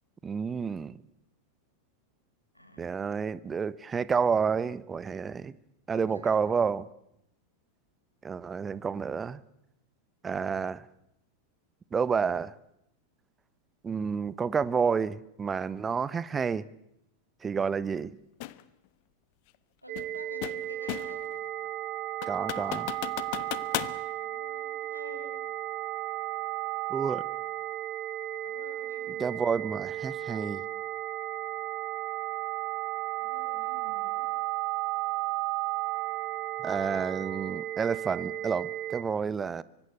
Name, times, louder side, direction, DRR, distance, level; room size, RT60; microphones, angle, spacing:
voice 1, 0.2-1.0 2.8-5.6 5.9-6.9 8.2-9.4 10.2-10.9 11.9-12.5 13.8-16.6 17.4-18.2 22.3-22.9 26.9-27.2 29.2-30.6 36.6-39.6, right 6 dB, 20° right, 1.1 m, -29 dB
voice 2, 2.5-3.1 5.9-6.4 19.8-21.3 23.9-25.3 28.4-29.4 33.2-34.4, equal, 90° left, 5.2 m, -50 dB
sound 1, 18.4-18.6 20.0-21.3 21.7-21.8 22.2-24.0, left 18 dB, 45° left, 1.2 m, -35 dB
sound 2, 19.9-39.0, right 16 dB, 40° right, 1.5 m, -34 dB
25.5 x 24.5 x 8.3 m
figure-of-eight pair, 90°, 0 cm